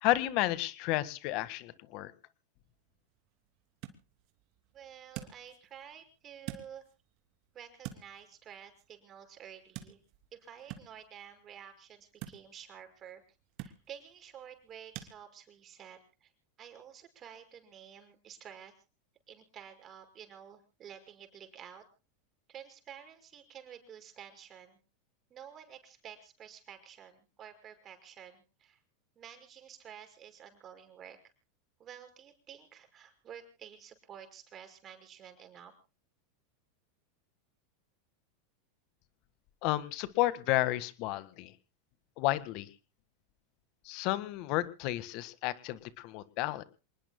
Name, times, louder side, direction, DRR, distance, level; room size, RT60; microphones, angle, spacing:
voice 1, 0.0-2.1 39.6-41.5 42.2-42.7 43.8-46.6, left 17 dB, 55° left, 15 dB, 1.6 m, -31 dB
sound 1, 2.6-15.1, right 12 dB, 55° right, 2.9 m, -50 dB
voice 2, 4.7-6.8 7.5-10.0 10.3-13.2 13.6-16.3 16.6-18.7 19.3-21.8 22.5-24.8 25.3-28.8 29.2-31.3 31.8-35.7, right 9 dB, 35° right, 7 dB, 5.9 m, -51 dB
27.5 x 20.0 x 2.2 m, 0.34 s
hypercardioid pair, 115°, 0 cm